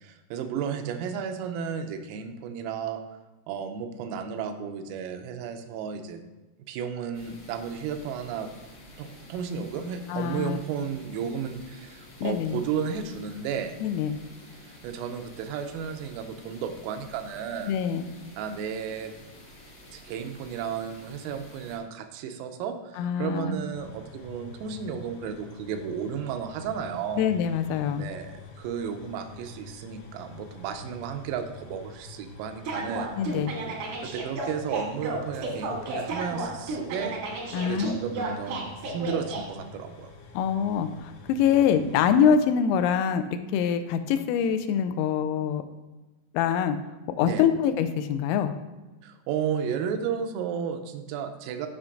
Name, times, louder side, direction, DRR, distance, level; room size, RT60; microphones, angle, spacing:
voice 1, 0.0-3.0 3.5-6.2 6.7-8.5 9.0-13.8 14.6-17.7 18.4-19.1 19.9-27.3 28.0-33.1 34.0-37.2 37.6-40.1 47.2-47.5 49.0-51.7, right 7 dB, 90° right, 6 dB, 3.4 m, -33 dB
sound 1, 7.1-21.8, left 1 dB, 50° left, 1.0 m, -50 dB
voice 2, 10.1-10.6 12.2-12.6 13.8-14.2 17.7-18.1 23.0-23.6 27.2-28.0 33.2-33.5 37.5-38.0 40.3-45.6 46.3-46.8 47.2-48.5, left 8 dB, 85° left, 9 dB, 3.2 m, -24 dB
sound 2, 23.7-42.2, left 3 dB, 70° left, 2.6 m, -47 dB
sound 3, 32.7-39.4, right 3 dB, 70° right, 1.9 m, -33 dB
12.5 x 5.9 x 2.5 m, 1.1 s
omnidirectional pair, 5.9 m